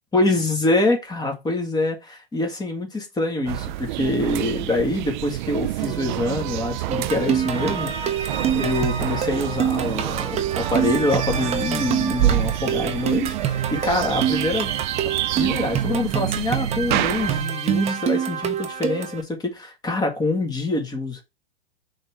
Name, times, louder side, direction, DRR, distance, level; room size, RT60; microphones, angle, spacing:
voice 1, 0.1-14.8 15.3-21.2, left 2 dB, 15° left, 1.9 m, -25 dB
sound 1, 3.5-17.4, right 14 dB, 50° right, 0.5 m, -28 dB
sound 2, 6.9-19.2, right 8 dB, 20° right, 0.9 m, -26 dB
5.4 x 3.8 x 4.7 m
hypercardioid pair, 120°, 30 cm